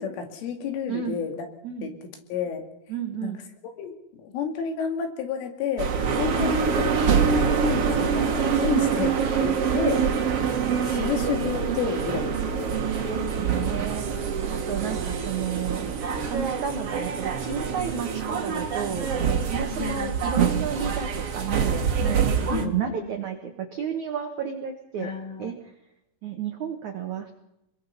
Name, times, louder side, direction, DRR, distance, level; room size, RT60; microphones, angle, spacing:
voice 1, 0.0-1.5 1.8-2.0 2.3-2.7 3.2-3.4 3.8-6.9 7.3-10.0 10.8-12.7 19.7-20.1 22.5-23.1 25.0-25.5, left 7 dB, 75° left, 4 dB, 4.8 m, -31 dB
voice 2, 0.9-1.2 1.6-1.9 2.9-3.4 6.3-6.6 9.7-10.0 13.1-14.0 14.5-15.9 16.2-25.1 25.4-25.5 26.2-27.3, right 7 dB, 75° right, 4 dB, 1.7 m, -32 dB
sound 1, 5.8-22.7, right 6 dB, 60° right, 1.6 m, -25 dB
26.0 x 22.5 x 5.7 m, 0.86 s
omnidirectional pair, 5.7 m